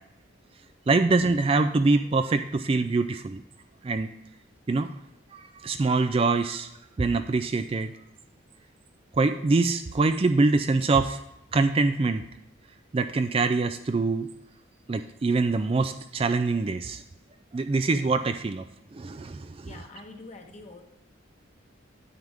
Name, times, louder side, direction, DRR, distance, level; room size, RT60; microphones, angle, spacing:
voice 1, 0.9-3.4 3.8-4.1 4.7-4.9 5.3-6.7 7.0-7.9 9.2-11.2 11.5-12.2 12.9-14.3 14.9-17.0 17.5-18.6 18.9-19.8, right 3 dB, 30° right, 9 dB, 0.3 m, -24 dB
voice 2, 19.6-20.8, left 2 dB, 35° left, 3 dB, 1.3 m, -45 dB
9.5 x 8.8 x 3.4 m, 0.86 s
head